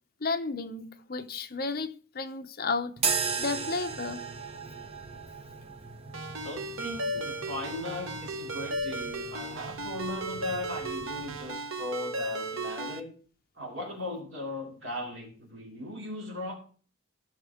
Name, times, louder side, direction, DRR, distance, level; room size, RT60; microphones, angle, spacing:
voice 1, 0.2-4.2, left 3 dB, 45° left, 0.7 m, -33 dB
sound 1, 3.0-11.5, right 5 dB, 30° right, 0.6 m, -37 dB
Ringtone, 6.1-13.0, right 1 dB, 85° right, 1.0 m, -35 dB
voice 2, 6.4-13.1 13.6-16.5, left 1 dB, 70° right, 2.9 m, -38 dB
14.0 x 5.8 x 3.6 m
head